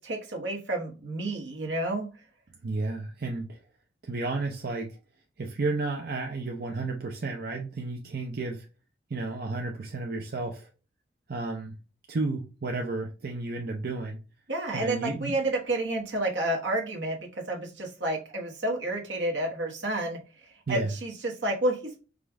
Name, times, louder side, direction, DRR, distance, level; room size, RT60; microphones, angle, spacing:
voice 1, 0.0-2.1 14.5-20.2 20.7-22.0, right 1 dB, 75° right, 1 dB, 1.2 m, -30 dB
voice 2, 2.6-3.6 4.0-5.0 5.4-8.7 9.1-10.7 11.3-11.7 12.1-14.2 14.7-15.3 20.7-20.9, right 3 dB, 55° right, 2 dB, 0.6 m, -32 dB
5.0 x 2.4 x 3.6 m, 0.33 s
head